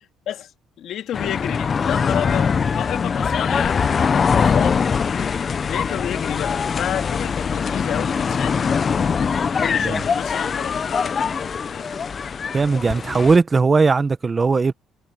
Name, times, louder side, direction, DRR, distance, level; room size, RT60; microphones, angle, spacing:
voice 1, 0.8-4.8 5.1-9.2 9.6-11.9, left 11 dB, 60° left, 2.9 m, -31 dB
sound 1, 1.1-13.4, left 6 dB, 30° left, 0.7 m, -22 dB
voice 2, 12.5-14.7, right 4 dB, 20° right, 1.0 m, -18 dB
cardioid pair, 150°, 0 cm